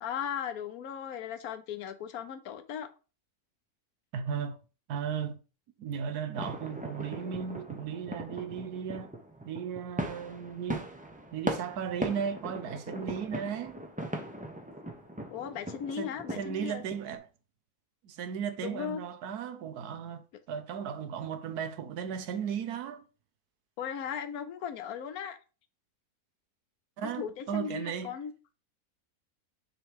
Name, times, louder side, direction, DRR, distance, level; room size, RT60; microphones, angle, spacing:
voice 1, 0.0-2.9 15.3-16.8 18.6-19.0 23.8-25.4 27.0-28.3, left 8 dB, 70° left, 1.2 m, -37 dB
voice 2, 4.1-4.6 4.9-5.4 5.8-9.1 9.4-10.9 11.3-13.8 16.0-16.1 16.4-17.3 18.0-23.1 27.0-28.2, right 7 dB, 80° right, 1.3 m, -36 dB
sound 1, 6.3-17.2, right 1 dB, 10° right, 0.5 m, -39 dB
6.4 x 3.4 x 4.6 m
omnidirectional pair, 1.6 m